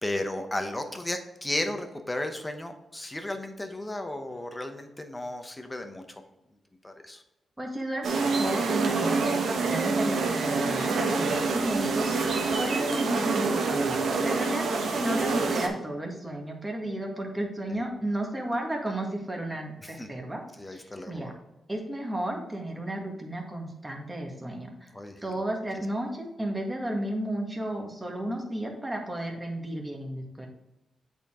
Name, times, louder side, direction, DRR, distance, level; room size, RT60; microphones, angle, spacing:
voice 1, 0.0-6.0 6.8-7.2 14.2-14.7 15.0-15.1 17.7-17.8 19.8-20.1 20.6-21.3 24.9-25.1, left 1 dB, 15° left, 6 dB, 1.0 m, -34 dB
voice 2, 7.6-20.4 20.7-21.3 21.7-24.9 25.2-30.5, right 1 dB, 15° right, 1 dB, 1.6 m, -33 dB
sound 1, 8.0-15.7, right 4 dB, 75° right, 1.1 m, -26 dB
7.9 x 4.5 x 3.7 m, 0.96 s
cardioid pair, 95°, 0 cm